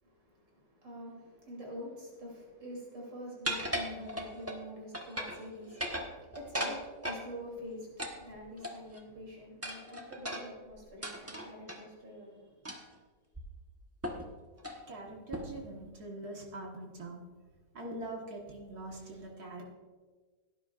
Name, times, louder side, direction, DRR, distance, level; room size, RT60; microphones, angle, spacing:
voice 1, 0.0-12.7, equal, 80° right, -3 dB, 3.8 m, -46 dB
sound 1, 3.4-4.6 4.9-5.4 5.7-7.2 8.0-9.0 9.6-11.8 12.6-13.0 13.3-13.4 14.0-14.3 14.6-14.8 15.3-15.7, equal, 10° right, 0.8 m, -37 dB
voice 2, 14.9-17.3 17.7-19.7, right 2 dB, 60° right, -1 dB, 2.0 m, -43 dB
17.0 x 9.9 x 2.5 m, 1.4 s
omnidirectional pair, 1.9 m